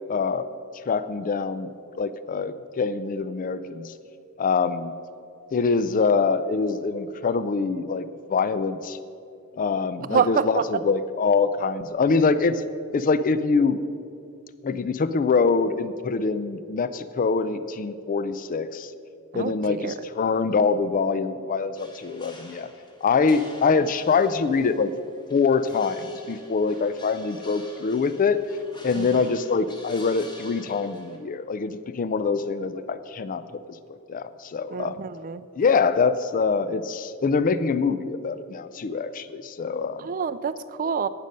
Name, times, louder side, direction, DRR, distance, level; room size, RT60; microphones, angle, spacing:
voice 1, 0.1-0.5 0.9-3.9 4.4-4.9 5.5-9.0 9.5-12.6 12.9-13.8 14.6-18.9 19.3-22.7 23.0-24.9 25.3-28.4 28.8-33.4 34.1-35.0 35.6-40.1, left 4 dB, 40° left, 14 dB, 0.4 m, -24 dB
voice 2, 10.1-10.6 19.3-19.9 28.9-29.3 34.7-35.5 40.0-41.1, right 6 dB, 40° right, 14 dB, 0.4 m, -27 dB
sound 1, 21.8-31.2, left 1 dB, 20° left, 1.5 m, -48 dB
12.0 x 9.0 x 5.3 m, 2.6 s
head